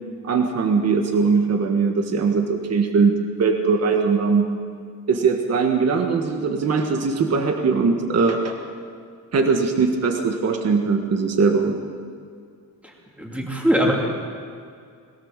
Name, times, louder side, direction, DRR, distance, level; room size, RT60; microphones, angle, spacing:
voice 1, 0.2-4.5 5.1-8.6 9.3-11.8, right 4 dB, 50° right, 4 dB, 1.6 m, -20 dB
voice 2, 13.2-13.9, equal, 5° right, -2 dB, 2.7 m, -20 dB
22.5 x 17.5 x 7.4 m, 2.3 s
wide cardioid pair, 175°, 33 cm